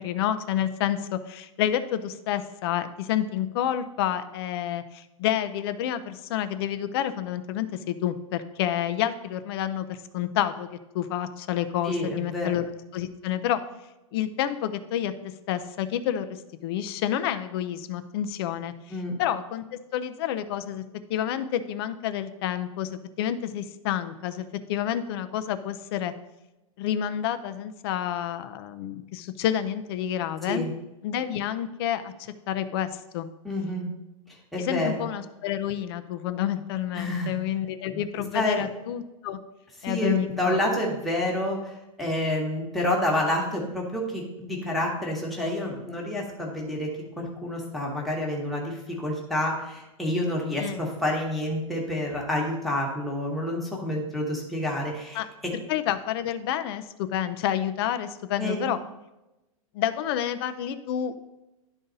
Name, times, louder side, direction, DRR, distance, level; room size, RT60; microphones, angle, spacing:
voice 1, 0.0-10.7 10.9-13.6 14.1-15.1 15.5-19.6 19.9-20.8 21.1-26.1 26.8-30.7 31.0-33.3 34.6-39.4 39.8-40.6 50.6-50.8 55.1-55.3 55.5-58.8 59.7-61.1, left 10 dB, 45° left, 11 dB, 0.6 m, -29 dB
voice 2, 11.8-12.5 18.9-19.1 30.5-30.7 33.4-33.9 34.5-35.1 36.9-37.3 37.9-38.0 38.3-38.6 39.8-55.5 58.4-58.7, left 1 dB, ahead, -3 dB, 1.3 m, -28 dB
11.5 x 4.0 x 4.0 m, 0.97 s
supercardioid pair, 155°, 18 cm